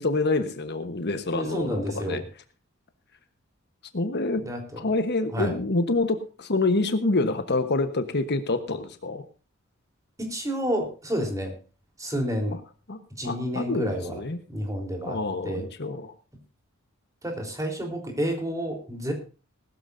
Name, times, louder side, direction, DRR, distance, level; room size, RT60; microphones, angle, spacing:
voice 1, 0.0-2.2 3.9-4.4 4.8-9.2 12.9-14.4 15.1-16.1, left 2 dB, 55° left, 8 dB, 1.2 m, -27 dB
voice 2, 1.3-2.2 4.4-4.9 5.3-5.6 10.2-11.5 12.0-12.6 13.2-14.2 14.5-15.7 17.2-19.1, equal, 15° right, 2 dB, 3.8 m, -30 dB
19.5 x 13.0 x 2.7 m, 0.34 s
head